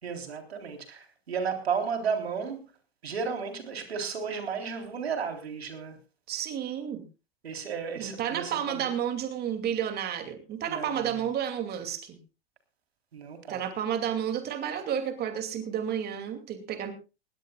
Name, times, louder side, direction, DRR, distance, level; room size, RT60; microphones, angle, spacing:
voice 1, 0.0-2.6 3.0-6.0 7.4-8.9 10.7-11.1 13.1-13.6, right 6 dB, 90° right, 5 dB, 3.8 m, -33 dB
voice 2, 6.3-7.0 7.9-12.2 13.5-16.9, right 9 dB, 30° right, 8 dB, 2.6 m, -31 dB
20.5 x 17.0 x 2.4 m, 0.30 s
hypercardioid pair, 115°, 30 cm